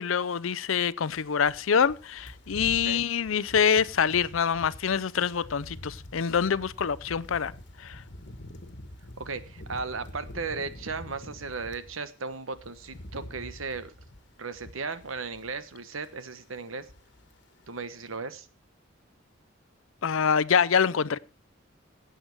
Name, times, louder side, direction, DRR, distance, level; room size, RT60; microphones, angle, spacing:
voice 1, 0.0-7.5 7.8-8.0 20.0-21.2, left 7 dB, 80° left, 0.5 m, -25 dB
sound 1, 1.0-12.0 12.3-15.7 16.0-16.3 16.6-17.4 17.6-17.8, left 1 dB, 55° left, 1.4 m, -46 dB
voice 2, 9.2-13.9 14.4-16.8 17.7-18.5, right 4 dB, 85° right, 1.2 m, -36 dB
17.0 x 7.8 x 4.6 m
head